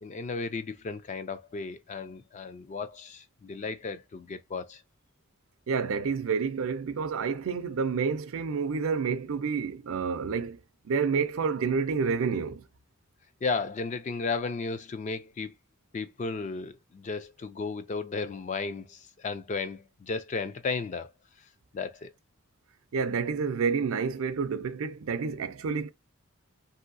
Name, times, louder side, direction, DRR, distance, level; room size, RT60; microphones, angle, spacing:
voice 1, 0.0-4.8 13.4-15.5 15.9-21.1 21.4-21.5 21.7-22.1, left 4 dB, 35° left, 0.3 m, -34 dB
voice 2, 5.7-10.6 10.8-12.6 22.9-25.9, right 5 dB, 75° right, 0.4 m, -29 dB
3.1 x 2.7 x 2.6 m
head